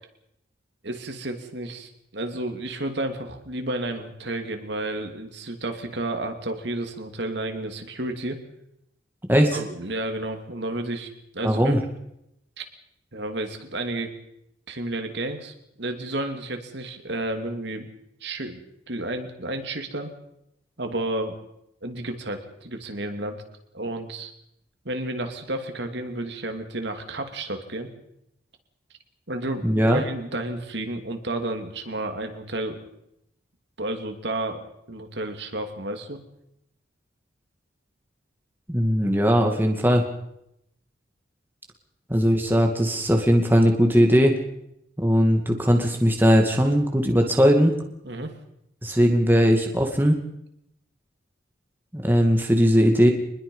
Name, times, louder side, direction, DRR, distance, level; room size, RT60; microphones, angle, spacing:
voice 1, 0.8-8.4 9.4-11.8 12.6-12.7 13.1-14.1 14.7-17.9 18.2-18.6 18.9-20.1 20.8-21.4 21.8-23.4 23.7-24.3 24.8-27.9 29.3-32.8 33.8-34.6 34.9-36.2 48.0-48.3, right 1 dB, 60° right, 5 dB, 2.7 m, -31 dB
voice 2, 9.3-9.6 11.4-11.8 29.6-30.0 38.7-40.1 42.1-44.3 45.0-47.8 48.8-50.2 51.9-53.1, equal, 10° right, 2 dB, 2.2 m, -19 dB
25.5 x 21.0 x 5.5 m, 0.81 s
head